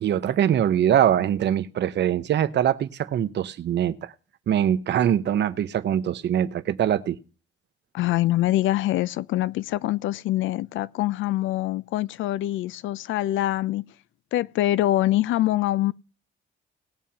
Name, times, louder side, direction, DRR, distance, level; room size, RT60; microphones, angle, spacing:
voice 1, 0.0-4.1 4.5-7.2, right 10 dB, 60° right, 0.8 m, -23 dB
voice 2, 7.9-13.9 14.3-15.9, left 15 dB, 75° left, 0.4 m, -24 dB
20.0 x 7.2 x 2.8 m
cardioid pair, 90°, 20 cm